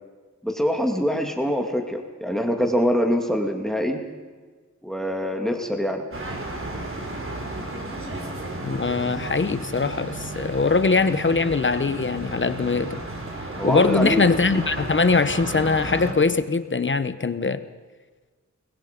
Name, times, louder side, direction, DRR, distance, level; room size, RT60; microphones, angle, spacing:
voice 1, 0.4-4.0 4.8-6.0 13.6-14.3, equal, ahead, 3 dB, 2.4 m, -24 dB
sound 1, 6.1-16.1, right 2 dB, 45° right, 4.4 m, -33 dB
voice 2, 8.6-13.0 13.6-17.6, left 4 dB, 40° left, 12 dB, 1.1 m, -22 dB
29.0 x 21.5 x 5.3 m, 1.4 s
wide cardioid pair, 95°, 30 cm